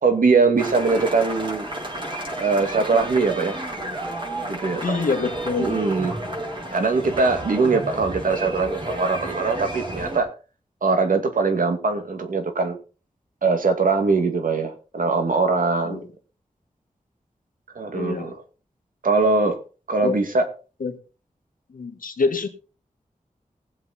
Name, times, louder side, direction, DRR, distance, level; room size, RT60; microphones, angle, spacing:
voice 1, 0.0-1.7 2.4-3.6 4.5-5.0 5.6-6.1 6.7-10.3 10.8-12.8 13.4-16.0 17.7-18.4 19.0-19.6 19.9-20.5, right 4 dB, 80° right, 6 dB, 2.3 m, -21 dB
sound 1, 0.6-10.2, right 1 dB, 35° right, 4.8 m, -31 dB
voice 2, 4.8-5.8 15.8-16.1 17.9-18.3 20.0-20.2 20.8-21.0 21.7-22.5, left 4 dB, 90° left, 6 dB, 1.9 m, -25 dB
19.0 x 7.9 x 4.3 m, 0.35 s
wide cardioid pair, 95°, 14 cm